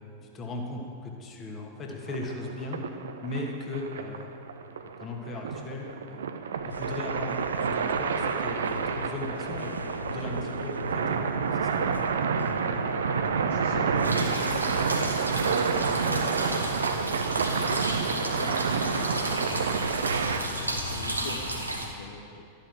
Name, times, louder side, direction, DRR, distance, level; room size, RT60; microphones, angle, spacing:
voice 1, 0.2-2.8 3.2-4.3 5.0-6.2 6.6-12.1 12.3-12.4, left 2 dB, 25° left, 0 dB, 2.4 m, -37 dB
sound 1, 2.1-20.4, right 6 dB, 65° right, 0.8 m, -29 dB
sound 2, 6.7-20.4, left 2 dB, 80° left, 0.5 m, -41 dB
voice 2, 13.5-22.6, left 4 dB, 60° left, 1 dB, 1.3 m, -42 dB
sound 3, 14.0-21.9, right 1 dB, 85° right, 1.7 m, -33 dB
13.5 x 11.5 x 7.4 m, 2.4 s
figure-of-eight pair, 90°, 0 cm